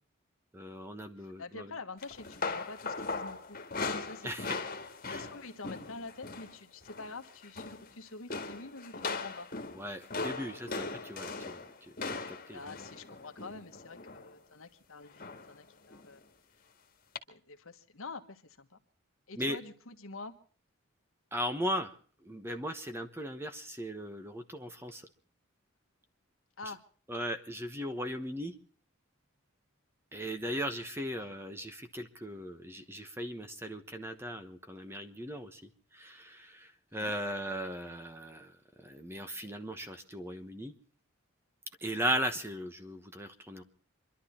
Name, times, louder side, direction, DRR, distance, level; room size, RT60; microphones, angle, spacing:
voice 1, 0.5-1.7 4.2-4.5 5.1-5.2 9.8-12.6 19.4-19.6 21.3-21.9 22.2-25.0 27.1-28.5 30.1-38.5 38.8-40.7 41.8-43.6, equal, 10° right, 8 dB, 1.0 m, -38 dB
voice 2, 1.2-4.6 5.0-9.7 12.5-16.2 17.3-18.8 19.3-20.3 26.6-26.8 31.2-31.3 37.0-37.1, left 3 dB, 70° left, 6 dB, 1.5 m, -47 dB
sound 1, 2.0-6.6 6.8-7.2 7.4-7.9 8.3-14.3 15.2-15.6 15.9-16.1 17.2-17.3, left 4 dB, 40° left, 1.8 m, -39 dB
27.0 x 12.0 x 4.3 m, 0.43 s
head